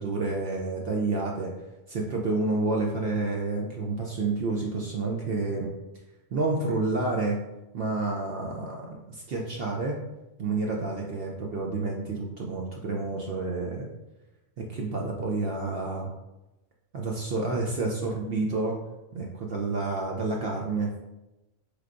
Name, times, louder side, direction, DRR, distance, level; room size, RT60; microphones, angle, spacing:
voice 1, 0.0-1.5 1.9-5.7 6.3-7.4 7.7-10.0 10.4-13.9 14.6-16.1 16.9-18.8 19.1-20.9, right 3 dB, 60° right, -1 dB, 0.6 m, -29 dB
4.4 x 3.3 x 2.5 m, 0.99 s
omnidirectional pair, 1.3 m